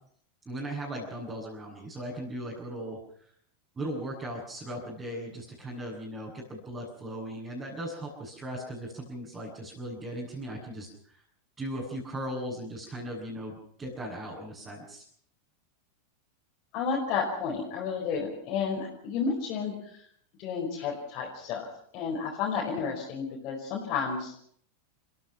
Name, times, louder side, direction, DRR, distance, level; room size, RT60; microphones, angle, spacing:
voice 1, 0.5-3.0 3.8-11.2 11.6-15.0, right 1 dB, 20° right, -5 dB, 7.3 m, -38 dB
voice 2, 16.7-20.0 20.4-21.7 21.9-24.4, left 5 dB, 45° left, -3 dB, 5.3 m, -31 dB
30.0 x 16.0 x 5.8 m, 0.64 s
figure-of-eight pair, 90°, 0 cm